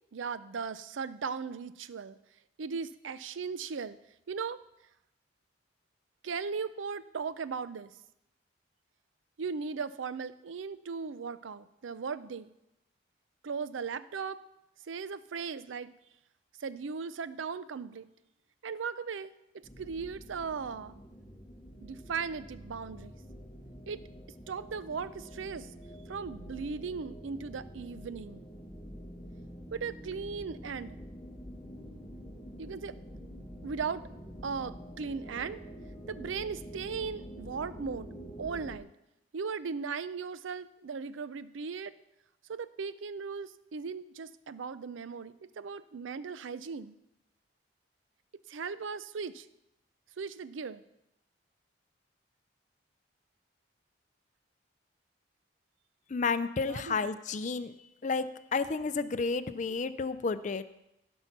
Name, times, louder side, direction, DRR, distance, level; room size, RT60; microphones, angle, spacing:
voice 1, 0.1-2.2 2.6-4.0 4.3-4.6 6.2-7.9 9.4-12.5 13.4-14.4 14.9-15.9 16.6-18.1 18.6-19.3 19.8-21.0 21.8-23.1 23.9-24.0 24.5-25.7 26.1-28.4 29.7-31.0 32.6-33.0 33.6-34.0 34.4-35.6 36.1-38.1 38.4-38.9 39.3-41.9 42.5-46.9 48.5-49.5 50.2-50.8 56.6-57.1, right 5 dB, 80° right, 15 dB, 0.5 m, -37 dB
sound 1, 19.6-38.8, equal, 15° left, 0.8 m, -47 dB
voice 2, 56.1-57.7 58.0-58.3 58.5-60.6, left 4 dB, 40° left, 12 dB, 0.4 m, -31 dB
15.5 x 5.5 x 5.9 m, 0.87 s
head